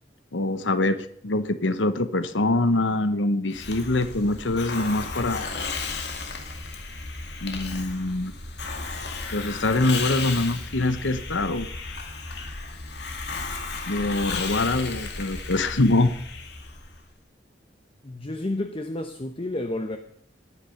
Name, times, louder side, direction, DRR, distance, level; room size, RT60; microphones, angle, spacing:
voice 1, 0.3-5.5 7.4-8.3 9.3-11.7 13.9-16.1, left 2 dB, 85° left, 12 dB, 1.1 m, -24 dB
Hiss, 3.5-17.0, left 4 dB, 60° left, 2.3 m, -34 dB
voice 2, 18.0-20.0, left 1 dB, 30° left, 7 dB, 0.9 m, -30 dB
19.5 x 9.5 x 5.8 m, 0.68 s
head